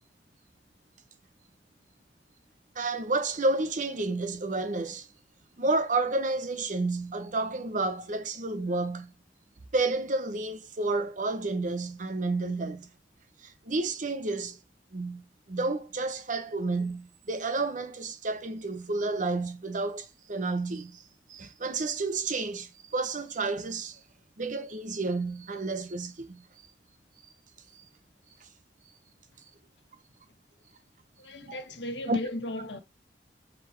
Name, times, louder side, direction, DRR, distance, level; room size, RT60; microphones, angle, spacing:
voice 1, 2.7-5.1 5.6-9.1 9.7-12.9 13.4-14.6 14.9-21.0 21.3-24.0 24.4-26.4 32.1-32.2, right 3 dB, 45° right, 0.9 m, -30 dB
voice 2, 31.2-32.8, left 1 dB, 90° left, 1.5 m, -36 dB
7.4 x 4.2 x 3.3 m
head